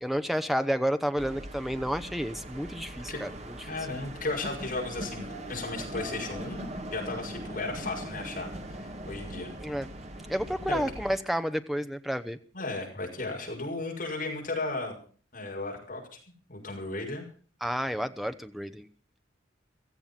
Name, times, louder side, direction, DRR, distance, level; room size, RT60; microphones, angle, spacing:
voice 1, 0.0-3.6 9.6-9.9 10.3-12.4 17.6-18.9, equal, ahead, 9 dB, 0.8 m, -30 dB
sound 1, 1.2-11.2, right 1 dB, 35° right, 1.7 m, -40 dB
voice 2, 3.6-9.5 10.7-10.8 12.5-15.0 15.3-16.2 16.5-17.2, left 2 dB, 45° left, 0 dB, 6.6 m, -35 dB
16.5 x 14.5 x 5.8 m, 0.43 s
head